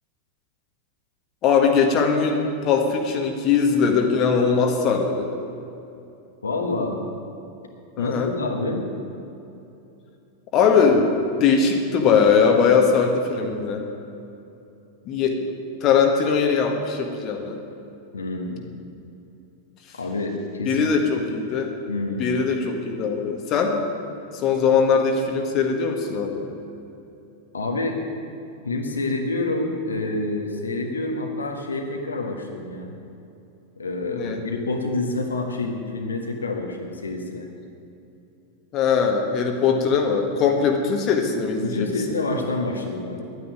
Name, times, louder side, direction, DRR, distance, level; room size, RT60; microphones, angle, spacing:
voice 1, 1.4-5.3 8.0-8.3 10.5-11.1 11.4-13.9 15.0-15.5 15.8-17.6 20.6-21.7 22.2-23.8 24.3-26.5 34.1-34.4 38.7-41.9, left 5 dB, 35° left, 3 dB, 1.6 m, -20 dB
voice 2, 6.4-7.0 8.0-8.9 18.1-18.7 20.0-21.1 21.9-22.3 27.5-28.0 28.6-32.9 33.8-37.5 41.6-43.2, left 2 dB, 75° left, 2 dB, 1.5 m, -27 dB
11.0 x 9.7 x 9.3 m, 2.8 s
figure-of-eight pair, 90°, 0 cm